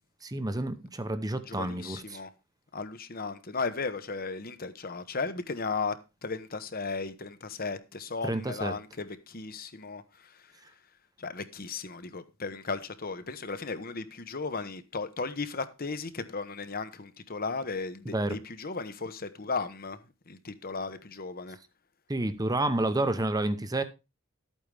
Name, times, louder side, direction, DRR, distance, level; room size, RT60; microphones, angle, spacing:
voice 1, 0.2-2.2 8.2-8.7 18.1-18.4 22.1-23.8, right 2 dB, 20° right, 0.9 m, -29 dB
voice 2, 1.4-2.3 2.7-6.0 6.2-10.5 11.2-20.0 20.3-21.6, left 4 dB, 45° left, 1.2 m, -35 dB
13.0 x 8.8 x 3.5 m
head